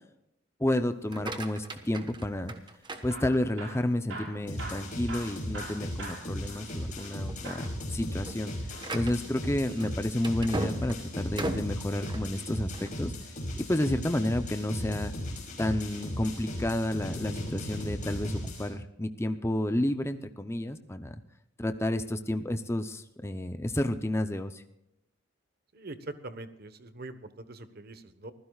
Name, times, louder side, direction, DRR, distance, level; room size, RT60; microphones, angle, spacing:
voice 1, 0.6-2.5 3.0-13.1 13.6-15.1 15.6-21.2 21.6-24.6, left 1 dB, 15° left, 8 dB, 0.6 m, -31 dB
sound 1, 0.9-3.8 4.3-4.7 5.2-5.3 5.7-5.8 6.5-6.8 7.1-13.0, right 1 dB, 20° right, 1.3 m, -39 dB
Hammer / Drill, 2.9-7.2 7.4-7.8 8.6-10.0 11.8-13.0 14.7-15.2 15.9-16.7 17.4-17.6 17.9-18.0 18.7-18.8, right 2 dB, 80° right, 5.9 m, -45 dB
sound 2, 4.5-18.7, left 1 dB, 40° left, 5.8 m, -37 dB
voice 2, 25.7-28.3, right 2 dB, 50° right, 11 dB, 1.2 m, -43 dB
25.5 x 15.5 x 2.4 m, 0.84 s
head